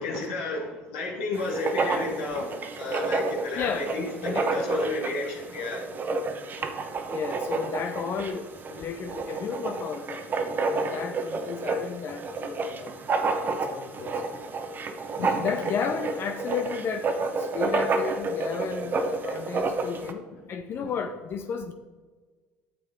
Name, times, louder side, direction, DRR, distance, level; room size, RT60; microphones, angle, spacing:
voice 1, 0.0-5.8 15.2-15.4, left 2 dB, 75° left, -3 dB, 1.6 m, -32 dB
Writing, 1.4-20.1, right 3 dB, 40° right, 1.0 m, -30 dB
voice 2, 3.6-3.9 4.2-4.5 7.1-10.3 10.6-12.9 13.5-14.2 15.2-21.7, left 6 dB, 45° left, 7 dB, 0.6 m, -33 dB
9.4 x 6.5 x 3.6 m, 1.4 s
hypercardioid pair, 70°, 5 cm